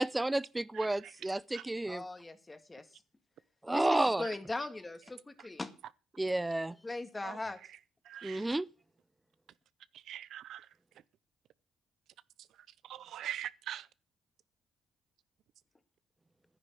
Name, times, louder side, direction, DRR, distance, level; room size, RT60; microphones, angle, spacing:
voice 1, 0.0-2.0 3.6-4.2 6.2-6.7 8.2-8.7, right 2 dB, 15° right, 0.6 m, -31 dB
voice 2, 1.9-2.8 3.7-5.7 6.8-7.6, left 2 dB, 20° left, 2.0 m, -39 dB
voice 3, 8.1-8.4 10.1-10.6 12.9-13.8, right 11 dB, 75° right, 0.5 m, -41 dB
11.0 x 10.0 x 6.7 m
cardioid pair, 90°, 0 cm